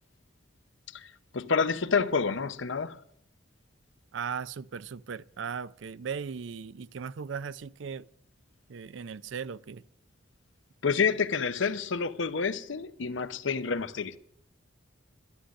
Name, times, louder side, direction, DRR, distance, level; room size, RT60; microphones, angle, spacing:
voice 1, 0.9-3.0 10.8-14.2, left 5 dB, 65° left, 0.7 m, -29 dB
voice 2, 4.1-8.1 8.7-9.8, right 6 dB, 65° right, 0.4 m, -37 dB
11.5 x 11.5 x 6.4 m
head